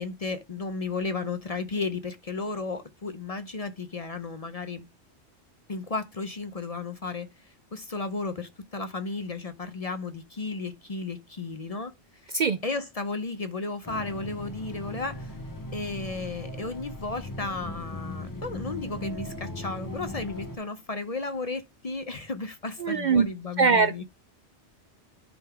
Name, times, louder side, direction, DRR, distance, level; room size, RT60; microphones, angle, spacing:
voice 1, 0.0-4.8 5.7-11.9 12.2-12.3 12.6-15.3 15.7-24.0, left 3 dB, 40° left, 0.7 m, -34 dB
sound 1, 13.8-20.6, left 1 dB, 20° left, 0.9 m, -38 dB
voice 2, 22.8-23.3 23.6-24.0, right 5 dB, 55° right, 0.6 m, -22 dB
10.5 x 3.8 x 4.5 m
omnidirectional pair, 1.2 m